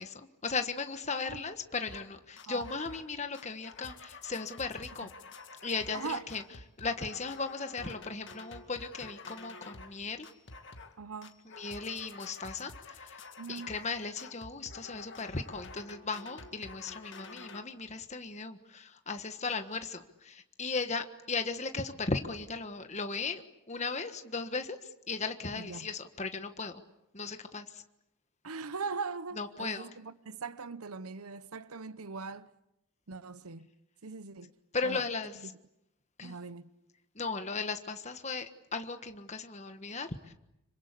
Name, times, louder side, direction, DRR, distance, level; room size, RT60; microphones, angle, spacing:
voice 1, 0.0-5.1 5.6-6.4 6.8-10.3 11.4-13.2 13.5-23.4 23.7-24.8 25.1-26.8 27.1-27.8 29.4-29.9 34.7-35.4 36.2-36.3 37.1-40.3, left 4 dB, 30° left, 1.5 m, -37 dB
sound 1, 1.9-2.1 2.4-3.1 3.3-10.0 10.2-11.0 11.2-17.6, left 4 dB, 55° left, 2.2 m, -49 dB
voice 2, 5.9-6.3 11.0-11.4 13.4-13.7 25.5-25.9 28.4-32.5 33.1-33.7 34.0-34.5 34.8-35.1 35.4-35.6 36.2-36.7, right 4 dB, 85° right, 0.9 m, -40 dB
26.5 x 24.5 x 8.4 m
head